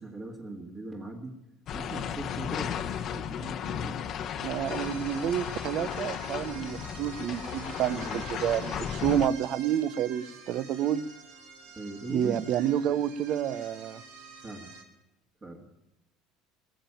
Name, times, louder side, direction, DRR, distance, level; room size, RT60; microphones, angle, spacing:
voice 1, 0.0-1.3 1.7-2.9 3.1-4.1 7.9-8.3 11.8-12.5 14.4-14.7 15.4-15.7, right 2 dB, 25° right, 0 dB, 2.0 m, -40 dB
sound 1, 1.7-9.3, left 8 dB, 50° left, 0.8 m, -35 dB
voice 2, 4.4-11.1 12.1-14.0, right 10 dB, 55° right, 17 dB, 0.7 m, -29 dB
sound 2, 4.6-14.8, right 5 dB, 90° right, 2.6 m, -48 dB
19.0 x 7.3 x 8.9 m, 0.98 s
supercardioid pair, 110°, 0 cm